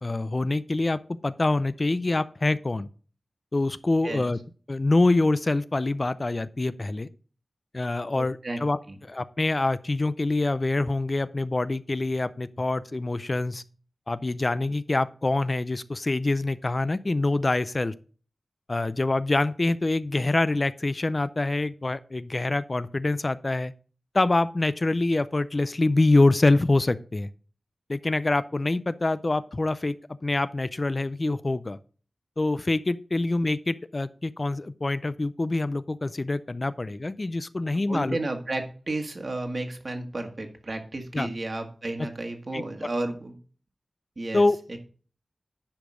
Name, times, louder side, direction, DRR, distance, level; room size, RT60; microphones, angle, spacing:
voice 1, 0.0-2.9 3.5-4.4 4.7-7.1 7.7-13.6 14.1-17.9 18.7-23.7 24.1-27.3 27.9-29.9 30.2-31.8 32.4-38.2 41.1-41.3 42.5-42.6 44.3-44.6, left 2 dB, 40° left, 14 dB, 0.4 m, -25 dB
voice 2, 8.2-8.6 8.9-9.0 37.9-43.4 44.2-44.4 44.7-44.8, right 2 dB, 50° right, 4 dB, 1.7 m, -32 dB
10.5 x 5.0 x 5.0 m, 0.40 s
wide cardioid pair, 70°, 0 cm